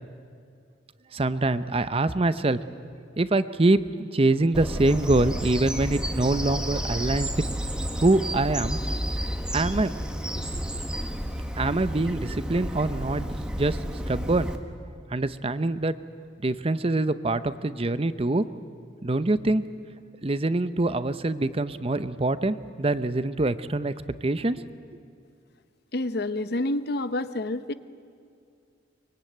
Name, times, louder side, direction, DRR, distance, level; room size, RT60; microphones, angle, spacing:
voice 1, 1.1-2.6 3.2-7.5 8.0-8.8 9.5-9.9 10.4-10.6 11.6-14.5 15.1-15.9 16.4-18.5 19.0-19.6 20.2-23.9 24.2-24.6, right 2 dB, 30° right, 13 dB, 0.7 m, -24 dB
Bird vocalization bird call bird song, 4.5-14.6, equal, 5° right, 1.4 m, -31 dB
voice 2, 25.9-27.7, left 2 dB, 60° left, 13 dB, 0.9 m, -28 dB
23.5 x 22.5 x 9.3 m, 2.4 s
head